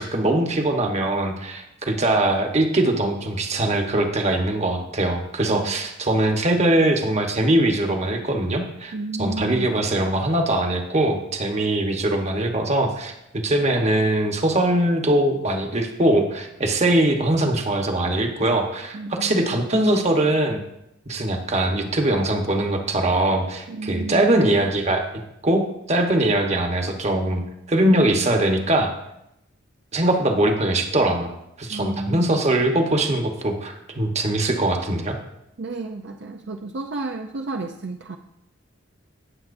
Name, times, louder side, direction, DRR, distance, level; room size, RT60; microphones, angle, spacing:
voice 1, 0.0-8.9 9.2-20.6 21.1-25.0 25.4-25.6 25.9-27.4 27.7-28.9 29.9-35.2, right 1 dB, 35° right, 3 dB, 1.2 m, -21 dB
voice 2, 8.9-9.7 18.9-19.6 23.7-24.4 31.7-32.4 35.6-38.2, right 3 dB, 60° right, 4 dB, 0.5 m, -32 dB
18.0 x 7.3 x 2.6 m, 0.84 s
head